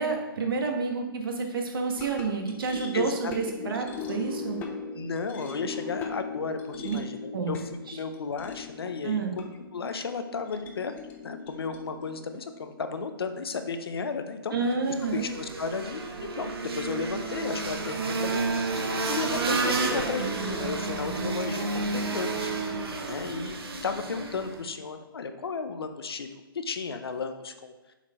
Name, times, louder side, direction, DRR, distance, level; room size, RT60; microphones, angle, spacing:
voice 1, 0.0-4.6 6.8-7.0 7.3-7.5 7.9-8.0 9.0-9.3 14.5-15.3, right 4 dB, 70° right, 2 dB, 1.6 m, -29 dB
sound 1, 2.0-14.4, left 5 dB, 15° left, 0.5 m, -41 dB
voice 2, 2.9-3.7 4.9-7.6 7.9-10.9 11.2-14.5 15.1-16.0 16.3-18.4 18.9-22.5 23.1-26.3 26.5-27.7, left 5 dB, 90° left, 8 dB, 0.8 m, -34 dB
sound 2, 14.8-24.6, right 3 dB, 90° right, 1.1 m, -31 dB
7.0 x 4.4 x 4.4 m, 1.2 s
hypercardioid pair, 160°, 12 cm